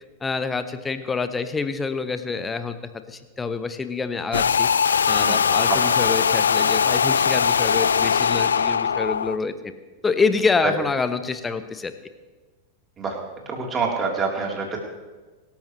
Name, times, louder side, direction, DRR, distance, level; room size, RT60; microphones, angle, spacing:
voice 1, 0.2-2.8 3.1-9.7 10.0-11.9, left 4 dB, 15° left, 11 dB, 1.1 m, -26 dB
sound 1, 4.3-9.4, left 7 dB, 70° left, 0.4 m, -20 dB
voice 2, 13.5-14.8, right 5 dB, 25° right, -1 dB, 3.7 m, -26 dB
25.0 x 13.0 x 3.3 m, 1.3 s
figure-of-eight pair, 90°, 0 cm